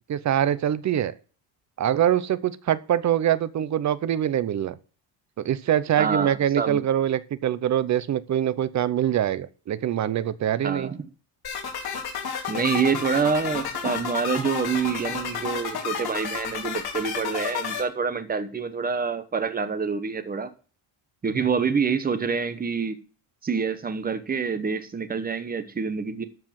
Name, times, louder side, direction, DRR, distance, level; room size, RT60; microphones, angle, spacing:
voice 1, 0.1-1.1 1.8-4.7 5.4-10.9, right 10 dB, 35° right, 0.6 m, -24 dB
voice 2, 6.0-6.8 10.6-11.0 12.5-20.5 21.2-23.0 23.4-26.2, right 5 dB, 20° right, 1.0 m, -26 dB
sound 1, 11.4-17.8, left 7 dB, 50° left, 4.2 m, -31 dB
13.5 x 4.8 x 7.4 m
cardioid pair, 155°, 49 cm